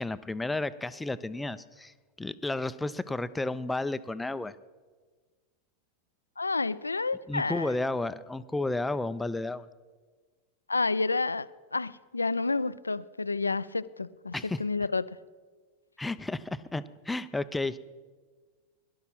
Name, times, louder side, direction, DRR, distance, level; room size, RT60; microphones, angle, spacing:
voice 1, 0.0-4.5 7.3-9.7 14.3-14.6 16.0-17.8, left 2 dB, 5° left, 14 dB, 0.5 m, -32 dB
voice 2, 6.4-7.7 10.7-15.2, left 3 dB, 80° left, 17 dB, 0.4 m, -30 dB
18.0 x 11.5 x 5.9 m, 1.4 s
figure-of-eight pair, 90°, 0 cm